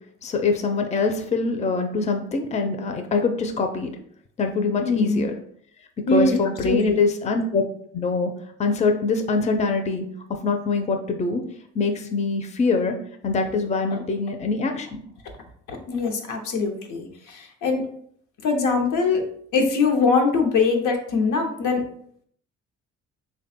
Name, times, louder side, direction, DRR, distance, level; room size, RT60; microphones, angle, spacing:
voice 1, 0.2-3.9 4.4-5.3 6.1-7.6 7.9-8.3 8.6-11.4 11.7-12.9 13.2-15.0, left 4 dB, 25° left, 5 dB, 0.5 m, -24 dB
voice 2, 4.8-5.2 6.1-6.4 6.6-7.0 15.7-17.8 18.4-19.2 19.5-21.8, left 4 dB, 80° left, 3 dB, 0.8 m, -22 dB
3.3 x 2.2 x 4.1 m, 0.64 s
cardioid pair, 90°, 30 cm